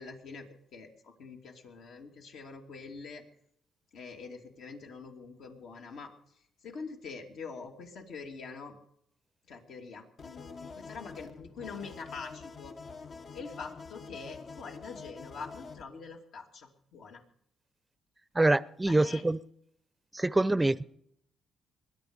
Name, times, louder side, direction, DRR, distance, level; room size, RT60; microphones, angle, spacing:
voice 1, 0.0-3.2 3.9-6.1 6.6-8.7 9.5-12.8 13.3-17.2 18.8-19.2, left 4 dB, 75° left, 2 dB, 2.7 m, -45 dB
sound 1, 10.2-15.8, left 4 dB, 50° left, 0.9 m, -46 dB
voice 2, 18.4-19.4 20.1-20.8, right 2 dB, 15° right, 17 dB, 0.6 m, -25 dB
21.5 x 10.5 x 5.2 m, 0.71 s
cardioid pair, 90°, 0 cm